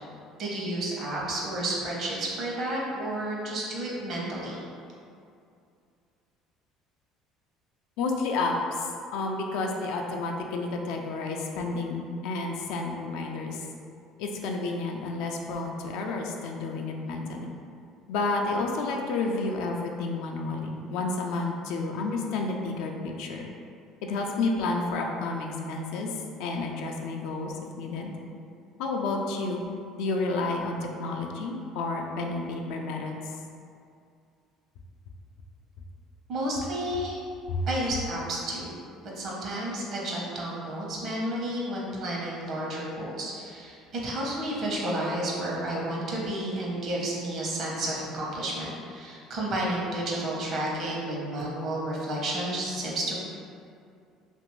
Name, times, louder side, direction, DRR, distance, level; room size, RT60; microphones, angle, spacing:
voice 1, 0.4-4.6 36.3-37.2 37.7-38.7 39.2-43.8 44.0-53.1, right 1 dB, 55° right, -4 dB, 0.9 m, -31 dB
voice 2, 8.0-13.7 14.2-17.5 18.1-23.5 24.0-26.1 26.4-28.1 28.8-29.6 30.0-33.2 37.5-37.7, left 3 dB, 75° left, 2 dB, 0.4 m, -30 dB
2.8 x 2.5 x 3.0 m, 2.4 s
supercardioid pair, 85°, 0 cm